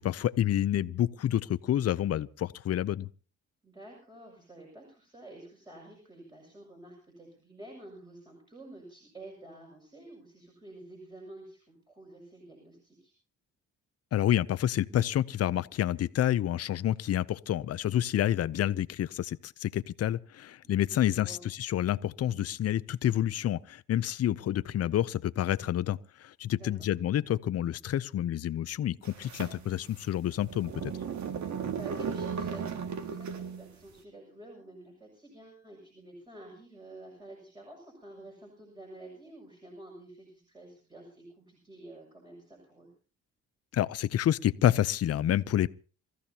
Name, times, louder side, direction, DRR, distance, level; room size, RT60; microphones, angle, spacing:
voice 1, 0.0-3.1 14.1-30.9 43.7-45.7, left 11 dB, 55° left, 0.7 m, -28 dB
voice 2, 3.6-13.1 20.6-21.5 26.5-26.9 31.8-42.9, right 2 dB, 15° right, 6.8 m, -50 dB
sound 1, 29.0-33.7, right 6 dB, 65° right, 2.1 m, -36 dB
27.5 x 14.5 x 2.9 m
cardioid pair, 90°, 30 cm